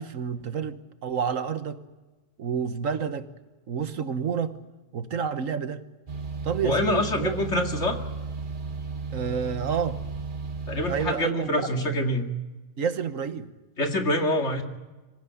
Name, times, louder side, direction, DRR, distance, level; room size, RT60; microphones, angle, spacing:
voice 1, 0.0-1.8 2.4-3.3 3.7-4.6 4.9-5.8 6.4-7.4 9.1-10.0 10.9-11.9 12.8-13.5, right 7 dB, 75° right, 10 dB, 1.6 m, -29 dB
sound 1, 6.1-11.1, right 4 dB, 40° right, 1.6 m, -34 dB
voice 2, 6.6-8.0 10.7-12.3 13.8-14.6, left 1 dB, 60° left, 3 dB, 2.5 m, -26 dB
25.5 x 15.5 x 9.3 m, 1.2 s
omnidirectional pair, 1.4 m